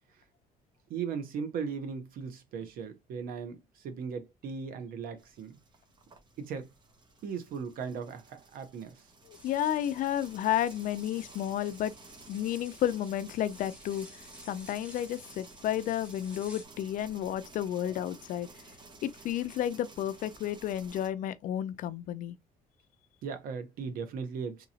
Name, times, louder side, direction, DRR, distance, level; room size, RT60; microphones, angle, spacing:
voice 1, 0.9-5.6 6.4-6.7 7.2-9.1 23.2-24.7, right 6 dB, 70° right, 0.9 m, -38 dB
sound 1, 5.2-21.1, right 3 dB, 30° right, 0.9 m, -54 dB
voice 2, 9.3-11.9 12.3-18.5 19.0-22.4, left 11 dB, 60° left, 0.4 m, -32 dB
sound 2, 9.3-16.6, equal, 5° right, 1.1 m, -53 dB
3.7 x 2.9 x 2.8 m
cardioid pair, 150°, 15 cm